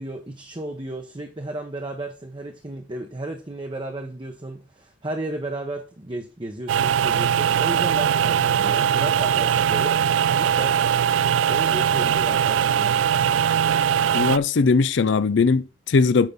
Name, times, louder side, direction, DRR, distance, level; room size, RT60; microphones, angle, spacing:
voice 1, 0.0-10.0 10.4-10.8 11.5-13.0, right 1 dB, 25° right, 0.9 m, -33 dB
sound 1, 6.7-14.4, right 8 dB, 90° right, 0.3 m, -21 dB
voice 2, 14.1-16.3, left 4 dB, 70° left, 0.5 m, -19 dB
8.9 x 3.7 x 5.6 m
head